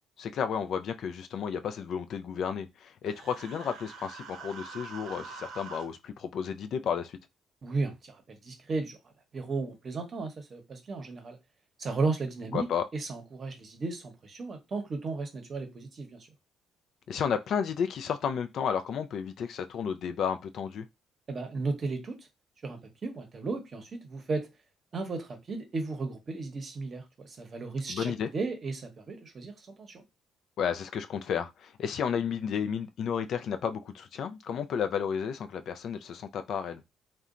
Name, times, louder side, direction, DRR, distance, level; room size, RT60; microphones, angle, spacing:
voice 1, 0.2-7.2 12.5-12.8 17.1-20.9 27.9-28.3 30.6-36.8, left 7 dB, 65° left, 0.3 m, -32 dB
Human voice, 3.0-5.8, right 5 dB, 75° right, 0.6 m, -45 dB
voice 2, 7.6-9.0 9.3-11.4 11.8-12.7 12.9-16.2 21.3-22.2 22.6-24.5 24.9-30.0, right 3 dB, 45° right, 0.8 m, -34 dB
2.8 x 2.2 x 2.4 m
cardioid pair, 90°, 0 cm